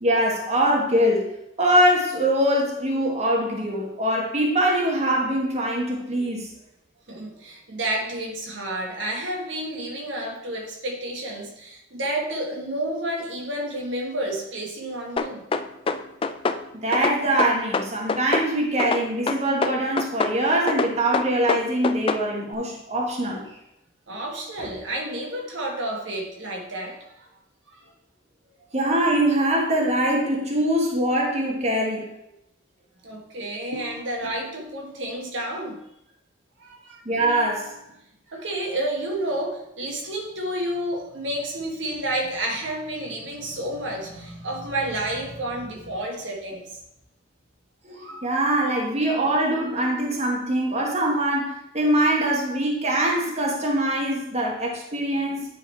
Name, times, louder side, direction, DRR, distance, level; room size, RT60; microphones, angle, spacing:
voice 1, 0.0-1.3 1.6-6.5 16.7-23.4 28.7-32.1 37.0-37.7 47.8-55.5, right 1 dB, 35° right, -1 dB, 1.4 m, -23 dB
voice 2, 7.1-15.4 24.1-27.3 27.7-27.9 33.0-35.8 36.6-37.0 38.3-46.8 47.9-48.3, right 1 dB, 70° right, 0 dB, 1.5 m, -30 dB
sound 1, 15.2-16.6 16.9-18.5 18.8-20.4 20.7-22.2, left 4 dB, 30° left, 0.3 m, -24 dB
9.9 x 4.0 x 4.3 m, 0.83 s
head